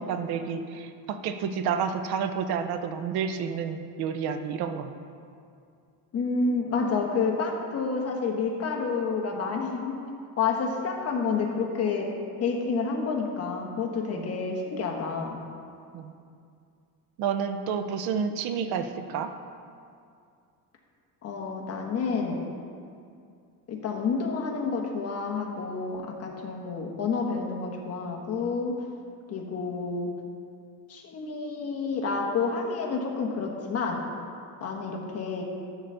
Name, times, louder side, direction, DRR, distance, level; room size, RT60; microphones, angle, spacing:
voice 1, 0.1-4.9 14.1-14.3 15.9-16.1 17.2-19.3, right 7 dB, 70° right, 8 dB, 0.8 m, -30 dB
voice 2, 6.1-10.0 10.4-12.1 12.4-15.4 21.2-22.4 23.7-28.7 29.3-30.1 30.9-34.0 34.6-35.4, left 4 dB, 40° left, 1 dB, 1.2 m, -29 dB
11.0 x 4.0 x 6.8 m, 2.4 s
cardioid pair, 150°, 39 cm